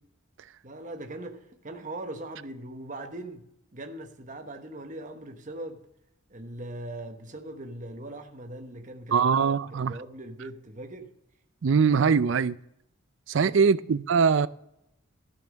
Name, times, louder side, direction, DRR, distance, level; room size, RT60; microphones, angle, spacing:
voice 1, 0.6-3.5 3.7-5.9 6.3-11.1 13.3-13.6, right 1 dB, 35° right, 1.0 m, -40 dB
voice 2, 9.1-10.0 11.6-12.6 13.3-14.5, right 6 dB, 60° right, 0.4 m, -22 dB
13.5 x 5.8 x 6.3 m
head